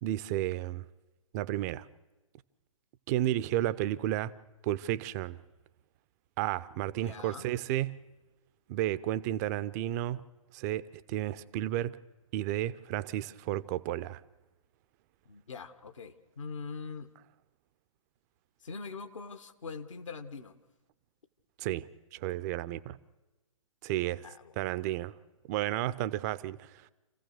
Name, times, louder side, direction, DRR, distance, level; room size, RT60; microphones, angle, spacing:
voice 1, 0.0-0.9 1.3-1.9 3.1-4.3 4.6-5.4 6.4-8.0 8.7-10.3 10.5-12.0 12.3-14.2 21.6-23.0 23.8-24.3 24.6-25.2 25.5-26.9, right 13 dB, 30° right, 0.7 m, -32 dB
voice 2, 6.9-7.5 15.2-17.1 18.6-20.6 24.2-24.5, left 5 dB, 65° left, 1.5 m, -43 dB
28.5 x 15.5 x 6.6 m
figure-of-eight pair, 115°, 17 cm